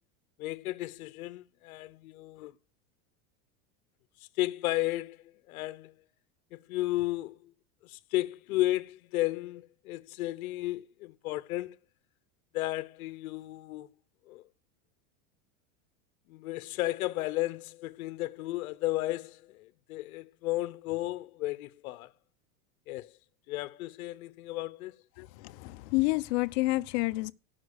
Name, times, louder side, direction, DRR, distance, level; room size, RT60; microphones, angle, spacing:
voice 1, 0.4-2.5 4.4-5.9 6.5-7.5 7.8-11.8 12.5-13.9 14.3-14.4 16.3-22.1 22.9-23.1 23.5-24.9, left 17 dB, 85° left, 0.9 m, -34 dB
voice 2, 25.2-27.3, left 21 dB, 50° left, 0.8 m, -29 dB
17.5 x 6.0 x 6.4 m
supercardioid pair, 155°, 42 cm